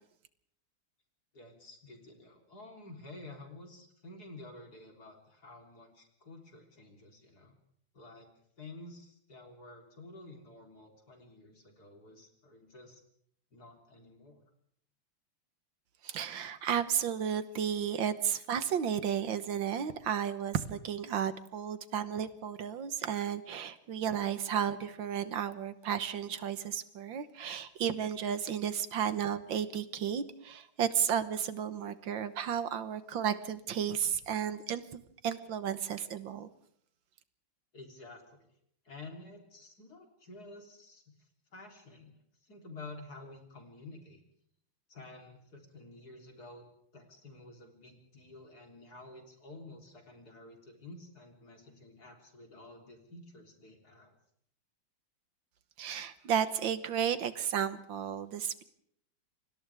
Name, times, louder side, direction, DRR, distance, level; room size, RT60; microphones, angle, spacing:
voice 1, 1.3-7.6 7.9-8.3 8.6-13.0 13.5-14.4 37.7-38.5 38.8-44.2 44.9-46.6 46.9-54.1, left 2 dB, 45° left, 2 dB, 4.2 m, -51 dB
voice 2, 16.0-36.5 55.8-58.6, right 8 dB, 70° right, 12 dB, 1.8 m, -33 dB
29.5 x 25.0 x 3.5 m, 0.68 s
omnidirectional pair, 2.3 m